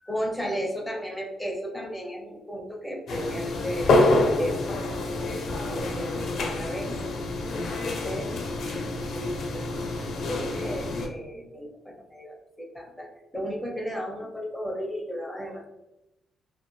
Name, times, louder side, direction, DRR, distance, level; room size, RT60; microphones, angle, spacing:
voice 1, 0.1-3.9 4.3-5.0 5.7-6.9 7.4-8.9 9.1-9.7 10.0-11.7 12.1-13.1 13.3-15.7, equal, ahead, -1 dB, 0.5 m, -34 dB
sound 1, 3.1-11.1, left 2 dB, 60° left, 0.4 m, -27 dB
2.2 x 2.1 x 3.0 m, 0.94 s
cardioid pair, 140°, 0 cm